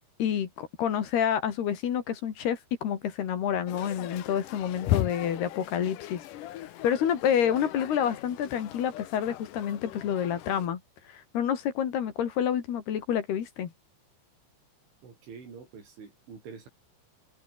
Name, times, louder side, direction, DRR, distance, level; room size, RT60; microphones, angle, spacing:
voice 1, 0.2-6.2 6.5-10.8 11.1-13.7, left 9 dB, 65° left, 4.2 m, -28 dB
sound 1, 3.7-10.7, left 14 dB, 85° left, 1.8 m, -36 dB
voice 2, 15.0-16.7, right 5 dB, 85° right, 8.8 m, -46 dB
omnidirectional pair, 5.3 m